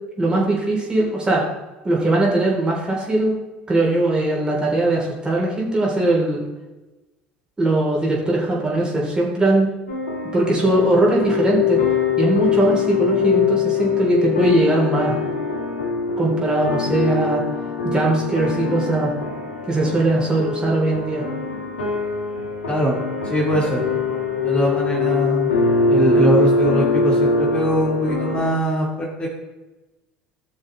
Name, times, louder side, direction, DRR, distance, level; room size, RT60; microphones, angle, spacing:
voice 1, 0.2-1.4 1.8-3.4 3.7-6.4 7.6-9.7 10.3-11.8 12.2-15.2 16.2-17.4 17.8-19.1 19.7-21.2, right 2 dB, 20° right, -3 dB, 3.7 m, -20 dB
sound 1, 9.9-28.5, left 4 dB, 80° left, 2.4 m, -22 dB
voice 2, 22.7-23.0 23.3-23.8 24.4-25.5 25.9-29.3, equal, 25° left, -2 dB, 2.6 m, -21 dB
16.0 x 6.4 x 3.4 m, 1.1 s
figure-of-eight pair, 65°, 5 cm